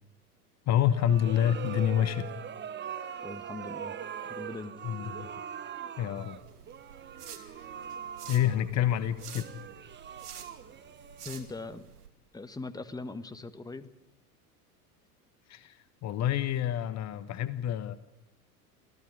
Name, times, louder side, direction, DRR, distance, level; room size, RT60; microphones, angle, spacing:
voice 1, 0.7-2.3 4.8-5.3 6.0-6.4 7.3-7.6 8.3-9.4 15.5-15.8 16.0-17.9, left 10 dB, 35° left, 14 dB, 1.2 m, -28 dB
sound 1, 0.8-11.8, right 8 dB, 25° right, 1.4 m, -42 dB
voice 2, 3.2-4.0 4.3-4.7 11.2-11.9 12.3-13.9, left 3 dB, 10° left, 11 dB, 1.4 m, -40 dB
sound 2, 6.2-12.1, right 8 dB, 75° right, 2.6 m, -49 dB
26.5 x 16.5 x 9.7 m, 0.90 s
figure-of-eight pair, 80°, 46 cm